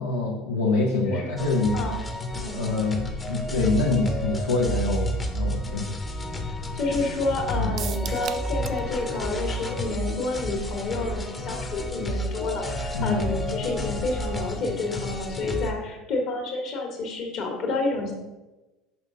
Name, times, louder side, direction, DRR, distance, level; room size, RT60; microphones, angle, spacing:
voice 1, 0.0-1.8 2.6-6.0 7.6-7.8 12.9-13.3, left 3 dB, 80° left, -3 dB, 0.7 m, -25 dB
voice 2, 1.0-1.5 1.7-1.9 2.4-2.8 6.7-18.1, left 2 dB, 50° left, 1 dB, 1.6 m, -29 dB
sound 1, 1.4-15.7, equal, 20° left, 0.8 m, -31 dB
sound 2, 7.8-8.9 9.1-9.2 9.6-9.7, right 9 dB, 45° right, 0.3 m, -36 dB
6.0 x 5.4 x 3.8 m, 1.1 s
figure-of-eight pair, 65°, 0 cm